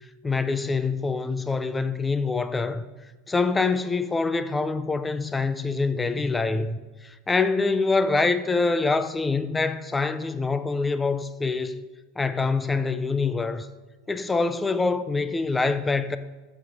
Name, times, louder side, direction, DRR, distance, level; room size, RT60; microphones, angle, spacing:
voice 1, 0.2-2.8 3.3-11.8 12.2-13.7 14.1-16.2, left 3 dB, 10° left, 0.6 m, -25 dB
14.0 x 7.4 x 5.4 m
supercardioid pair, 130°, 0 cm